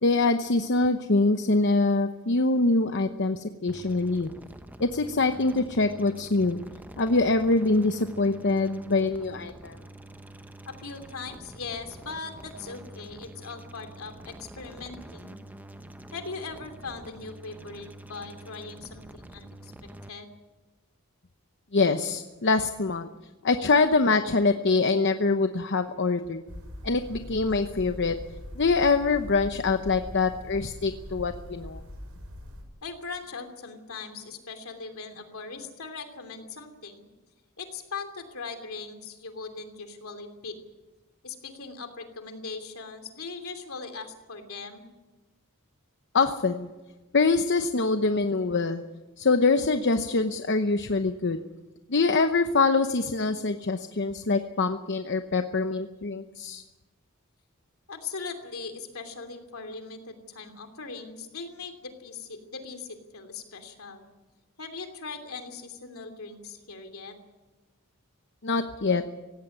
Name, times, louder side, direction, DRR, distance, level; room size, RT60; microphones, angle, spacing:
voice 1, 0.0-4.3 4.8-6.6 7.0-9.8 21.7-23.1 23.4-26.4 26.8-28.2 28.6-31.8 46.1-46.7 47.1-48.8 49.2-51.4 51.9-56.6 68.4-69.0, left 3 dB, 55° left, 8 dB, 0.9 m, -24 dB
sound 1, 3.7-20.1, right 1 dB, 10° right, 0.8 m, -46 dB
voice 2, 10.7-15.4 16.1-19.7 20.1-20.3 32.8-37.0 37.6-40.5 41.2-44.9 57.9-64.0 64.6-67.1, left 4 dB, 70° left, 7 dB, 2.9 m, -40 dB
sound 2, 26.5-32.6, left 1 dB, 85° right, 5.1 m, -42 dB
17.5 x 17.0 x 9.6 m, 1.2 s
head